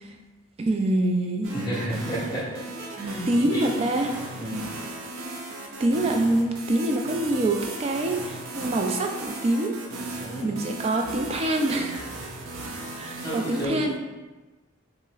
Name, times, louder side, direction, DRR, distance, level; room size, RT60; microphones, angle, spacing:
voice 1, 0.6-1.7 3.3-4.1 5.8-9.7 10.1-10.2 10.4-12.0 13.0-14.0, right 1 dB, 30° right, 3 dB, 0.3 m, -25 dB
voice 2, 1.4-2.6 3.0-3.8 4.3-4.6 10.2-10.5 13.2-13.8, right 1 dB, 20° left, -7 dB, 1.2 m, -31 dB
sound 1, 1.4-13.7, right 2 dB, 85° right, 0.5 m, -37 dB
5.4 x 2.0 x 2.3 m, 1.2 s
head